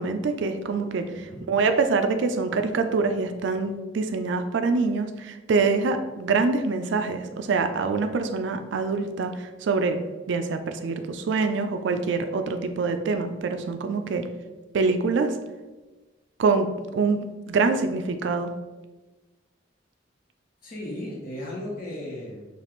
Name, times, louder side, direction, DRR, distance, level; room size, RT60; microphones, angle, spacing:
voice 1, 0.0-1.1 1.5-10.0 10.3-14.3 14.7-15.3 16.4-18.5, right 4 dB, 70° right, 7 dB, 0.4 m, -25 dB
voice 2, 1.1-1.4 20.6-22.5, left 1 dB, 50° left, -5 dB, 1.1 m, -35 dB
6.8 x 2.4 x 3.1 m, 1.2 s
head